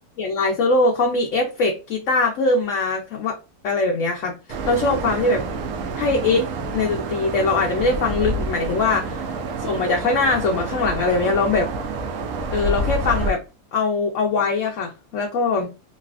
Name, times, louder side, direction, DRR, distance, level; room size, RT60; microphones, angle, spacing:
voice 1, 0.2-3.4 3.6-5.4 5.9-6.5 6.7-9.2 9.6-11.7 12.5-13.4 13.7-15.7, left 3 dB, 65° left, 0.8 m, -21 dB
sound 1, 4.5-13.3, right 2 dB, 70° right, 0.8 m, -28 dB
3.1 x 2.7 x 2.3 m
omnidirectional pair, 1.6 m